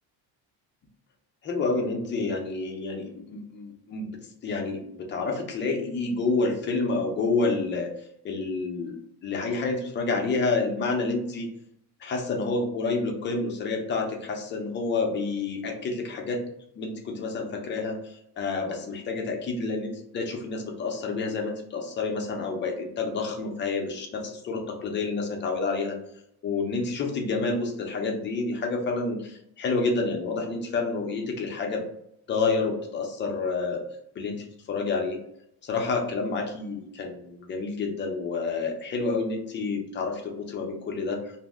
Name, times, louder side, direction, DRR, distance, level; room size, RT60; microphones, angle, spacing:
voice 1, 1.4-4.1 4.4-7.9 8.2-9.0 9.2-11.5 12.0-16.4 16.8-26.0 26.4-31.8 32.3-33.8 34.2-35.2 35.6-41.3, left 3 dB, 30° left, 2 dB, 0.5 m, -29 dB
2.6 x 2.0 x 3.4 m, 0.74 s
cardioid pair, 145°, 40 cm